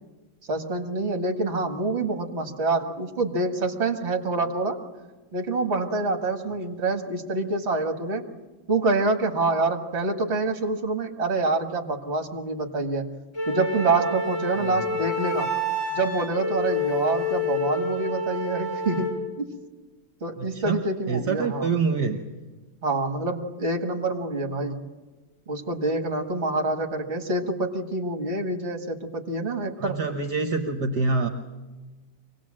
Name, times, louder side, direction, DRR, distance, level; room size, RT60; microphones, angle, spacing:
voice 1, 0.5-4.8 5.3-8.3 8.7-13.1 13.5-15.5 15.9-19.5 20.2-21.7 22.8-24.8 25.5-30.0, right 2 dB, 35° right, 4 dB, 1.9 m, -26 dB
Wind instrument woodwind instrument, 13.3-19.2, left 1 dB, 70° left, 8.7 m, -28 dB
voice 2, 20.4-20.8 21.1-22.2 29.8-31.3, right 4 dB, 60° right, 5 dB, 1.6 m, -26 dB
24.5 x 18.5 x 7.5 m, 1.2 s
omnidirectional pair, 2.1 m